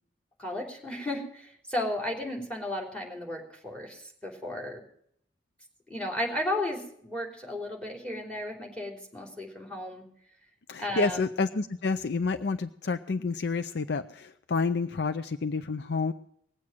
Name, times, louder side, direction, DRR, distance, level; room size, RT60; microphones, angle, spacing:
voice 1, 0.4-4.8 5.9-10.0 10.8-11.2, left 1 dB, 5° left, 1 dB, 3.5 m, -34 dB
voice 2, 10.7-16.1, left 4 dB, 60° left, 10 dB, 0.5 m, -29 dB
19.5 x 7.8 x 7.4 m, 0.67 s
head